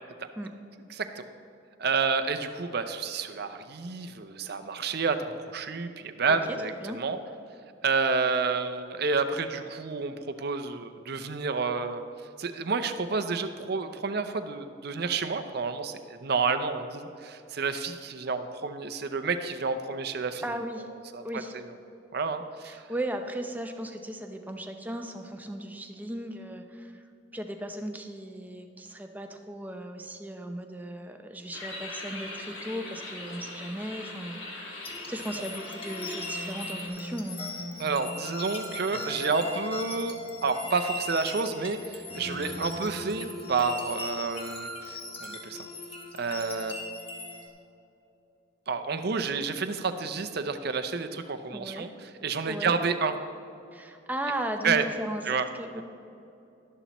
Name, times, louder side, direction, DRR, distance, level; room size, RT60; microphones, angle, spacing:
voice 1, 0.9-1.2 1.8-7.2 7.8-12.0 12.4-20.4 21.1-21.4 22.1-22.8 37.8-40.2 40.4-45.6 46.2-46.8 48.7-53.1 54.6-54.8 55.2-55.5 55.8-55.9, right 4 dB, 50° right, 9 dB, 0.6 m, -30 dB
voice 2, 20.4-20.9 21.2-21.6 22.6-27.0 27.3-34.7 35.1-37.4 51.5-51.9 52.5-52.8 53.7-55.8, right 1 dB, 10° right, 5 dB, 0.6 m, -36 dB
sound 1, 31.5-36.9, left 2 dB, 65° left, 1.9 m, -41 dB
sound 2, 34.8-47.5, left 2 dB, 30° left, 1.1 m, -38 dB
12.5 x 11.0 x 3.0 m, 2.8 s
head